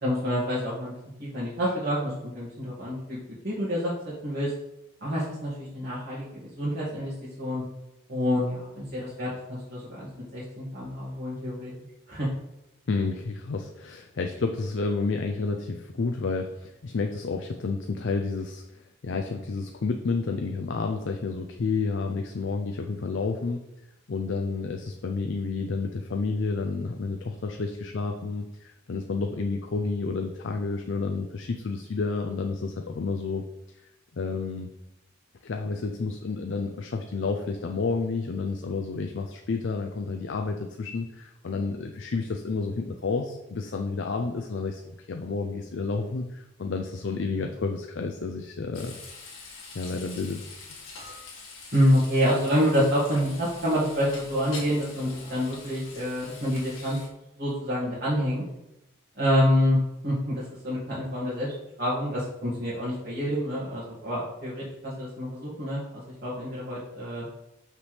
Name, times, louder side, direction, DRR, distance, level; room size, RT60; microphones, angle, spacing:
voice 1, 0.0-0.9 1.2-3.2 3.4-3.9 4.2-4.5 5.0-7.1 7.4-7.6 8.1-11.7 12.1-12.3 47.4-47.5 51.7-57.0 57.4-58.4 59.2-59.8 60.0-67.3, equal, 50° right, -9 dB, 1.8 m, -27 dB
voice 2, 12.9-23.6 24.1-33.4 34.1-34.7 35.4-49.0 49.7-50.5, left 4 dB, 65° left, 3 dB, 0.4 m, -30 dB
Frying (food), 48.7-57.1, left 3 dB, 90° left, 1.6 m, -44 dB
5.9 x 5.9 x 3.2 m, 0.89 s
head